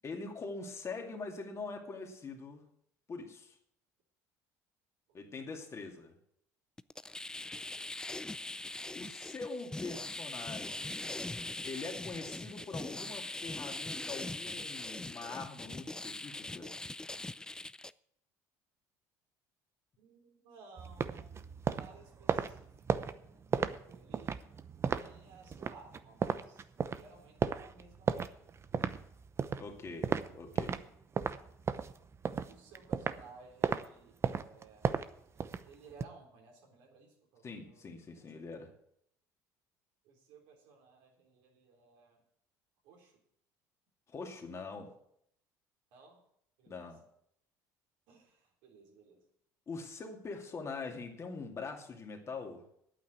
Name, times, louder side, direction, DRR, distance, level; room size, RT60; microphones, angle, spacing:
voice 1, 0.0-2.6 3.1-3.6 5.1-6.1 8.9-11.2 11.6-16.7 29.6-30.8 37.4-38.7 44.1-44.9 46.7-47.0 49.7-52.6, left 4 dB, 35° left, 3 dB, 2.4 m, -43 dB
sound 1, 6.8-17.9, left 2 dB, 10° left, 0.4 m, -41 dB
voice 2, 7.5-7.9 20.0-22.7 23.0-24.4 24.9-26.6 26.9-28.3 32.5-34.9 35.4-38.3 40.0-42.2 42.8-43.1 45.9-46.2 46.6-46.9 48.1-49.2, right 4 dB, 75° right, 0 dB, 3.8 m, -58 dB
sound 2, 20.8-30.9 31.2-33.3 33.6-33.8 34.2-36.0, right 6 dB, 35° right, 0.8 m, -34 dB
9.3 x 8.7 x 8.2 m, 0.72 s
supercardioid pair, 80°, 8 cm